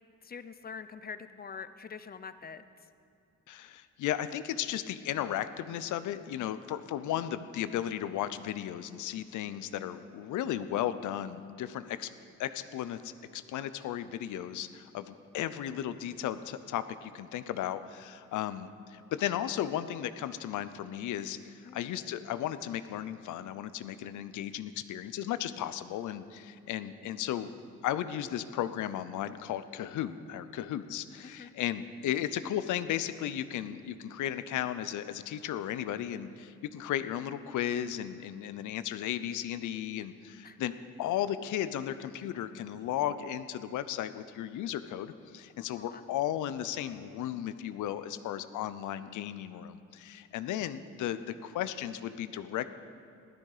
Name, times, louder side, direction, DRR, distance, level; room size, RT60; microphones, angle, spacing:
voice 1, 0.2-2.7 21.6-22.0 31.2-31.5 40.4-40.6 45.7-46.0, left 6 dB, 30° left, 12 dB, 0.6 m, -45 dB
voice 2, 3.5-12.1 12.4-27.5 27.8-52.7, left 11 dB, 80° left, 12 dB, 0.7 m, -35 dB
16.0 x 12.5 x 5.0 m, 2.5 s
cardioid pair, 90°, 30 cm